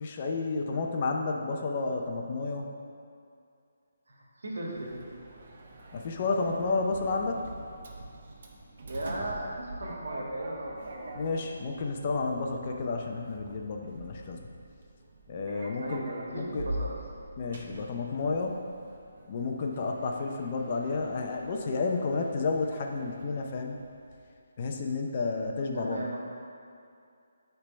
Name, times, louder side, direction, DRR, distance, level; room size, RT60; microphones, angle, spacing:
voice 1, 0.0-2.7 5.9-7.4 11.2-14.4 15.3-16.0 16.3-16.7 17.4-18.6 19.3-23.8 24.6-26.0, left 3 dB, 30° left, 2 dB, 0.5 m, -31 dB
voice 2, 4.1-5.0 8.8-11.1 15.8-17.0 25.8-26.2, right 1 dB, 85° right, -3 dB, 1.7 m, -37 dB
Sliding door, 4.7-24.3, right 1 dB, 45° right, 0.7 m, -45 dB
8.5 x 3.4 x 5.0 m, 2.4 s
hypercardioid pair, 175°, 0 cm